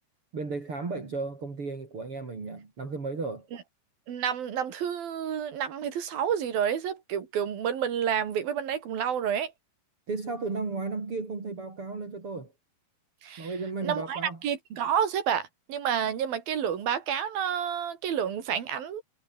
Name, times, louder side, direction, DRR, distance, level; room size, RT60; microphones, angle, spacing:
voice 1, 0.3-3.5 10.1-12.5 13.4-14.4, right 3 dB, 40° right, 4.8 m, -34 dB
voice 2, 4.1-9.5 13.2-13.5 13.8-19.0, right 8 dB, 90° right, 4.5 m, -29 dB
omnidirectional pair, 4.1 m